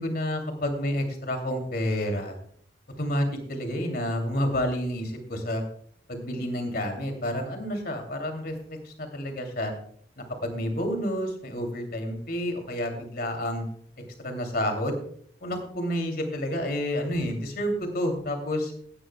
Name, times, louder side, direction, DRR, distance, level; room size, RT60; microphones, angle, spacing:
voice 1, 0.0-2.4 3.0-5.6 6.1-9.7 10.2-13.6 14.2-15.0 15.4-18.7, equal, 55° left, 4 dB, 2.7 m, -29 dB
17.5 x 12.5 x 2.3 m, 0.62 s
head